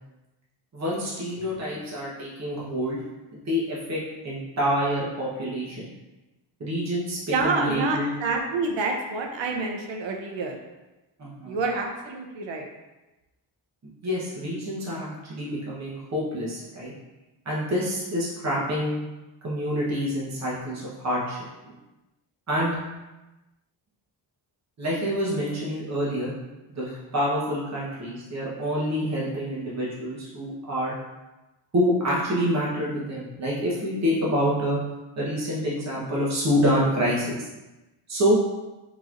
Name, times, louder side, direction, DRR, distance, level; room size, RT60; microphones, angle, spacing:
voice 1, 0.7-3.0 3.3-5.9 6.6-8.1 11.2-11.6 14.0-16.9 17.4-19.0 19.4-21.4 21.6-21.7 22.5-22.7 24.8-26.3 26.7-31.0 31.7-34.8 35.2-37.5 38.1-38.4, equal, 40° right, -6 dB, 1.1 m, -27 dB
voice 2, 7.3-10.6 11.4-12.7, right 3 dB, 85° right, 2 dB, 0.7 m, -28 dB
3.8 x 3.0 x 2.5 m, 1.1 s
cardioid pair, 100°, 43 cm